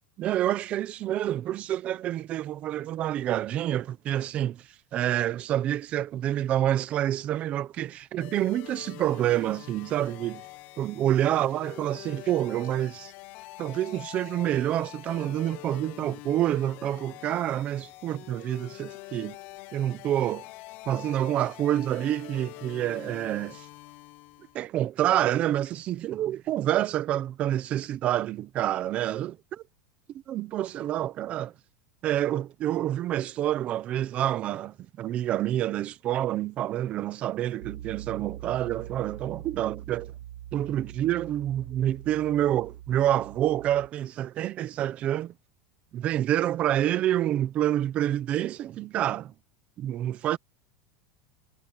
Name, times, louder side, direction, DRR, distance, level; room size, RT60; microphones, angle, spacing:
voice 1, 0.2-4.6 4.9-10.4 10.8-13.1 13.6-19.4 19.7-20.4 20.9-23.7 24.5-29.6 30.3-31.5 32.0-40.1 40.5-45.3 45.9-49.3 49.8-50.4, right 12 dB, 30° right, 0.9 m, -28 dB
sound 1, 8.2-24.6, left 19 dB, 40° left, 0.8 m, -45 dB
Piano, 37.6-43.9, right 12 dB, 90° right, 1.8 m, -43 dB
supercardioid pair, 175°, 5 cm